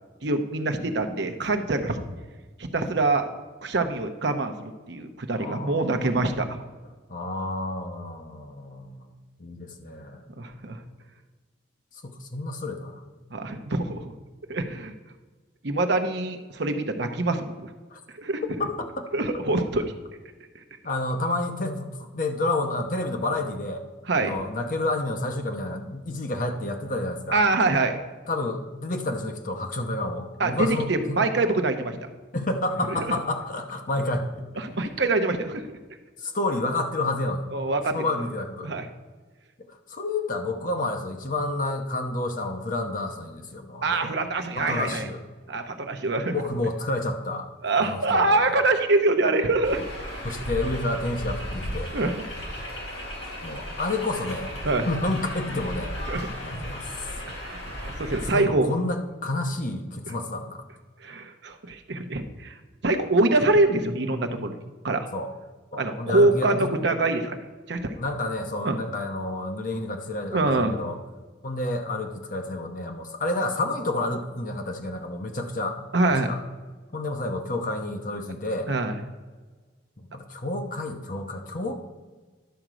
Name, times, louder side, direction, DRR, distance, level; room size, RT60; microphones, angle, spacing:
voice 1, 0.2-2.0 2.6-3.3 3.6-6.6 10.4-10.8 13.3-14.1 14.5-14.9 15.6-17.7 18.1-18.4 19.1-19.9 24.1-24.3 27.3-28.0 30.4-32.0 34.6-35.6 37.5-38.1 38.6-38.9 43.8-45.1 45.5-46.4 47.6-49.8 51.9-52.2 54.6-54.9 56.1-56.3 57.4-58.7 61.0-62.5 62.8-64.5 64.8-65.1 65.8-67.4 67.7-67.9 68.6-68.8 70.3-70.8 75.9-76.3 78.7-78.9, right 2 dB, 60° right, 6 dB, 0.8 m, -24 dB
voice 2, 5.3-6.0 7.1-9.0 9.4-10.2 12.0-13.0 17.9-18.0 18.6-19.1 20.8-23.8 24.1-27.4 28.3-31.3 32.3-34.4 36.2-37.5 37.9-38.8 39.9-44.1 44.6-45.2 46.3-47.5 47.8-48.6 50.2-51.9 52.6-52.7 53.4-54.5 54.9-55.9 56.4-56.9 58.3-60.6 65.1-65.3 65.7-66.7 68.0-71.0 71.4-75.8 76.1-76.4 76.9-78.7 80.0-81.8, left 2 dB, 45° left, 5 dB, 0.9 m, -30 dB
sound 1, 49.6-58.3, equal, 70° left, 3.3 m, -35 dB
11.5 x 6.1 x 5.0 m, 1.3 s
head